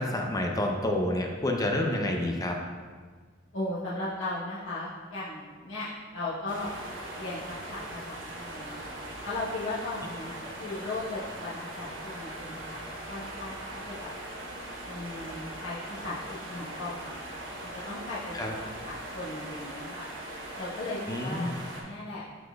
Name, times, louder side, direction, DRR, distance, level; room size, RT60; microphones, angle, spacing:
voice 1, 0.0-2.6 18.3-18.5 21.1-21.6, left 1 dB, 20° left, 1 dB, 0.5 m, -28 dB
voice 2, 3.5-5.9 6.1-6.7 7.1-8.8 9.2-12.8 13.1-13.6 13.9-14.1 14.8-15.8 16.0-17.2 17.6-20.1 20.6-21.5 21.8-22.2, left 2 dB, 80° left, -9 dB, 1.1 m, -37 dB
sound 1, 6.5-21.8, right 1 dB, 75° right, 1.1 m, -40 dB
11.5 x 4.1 x 2.3 m, 1.5 s
head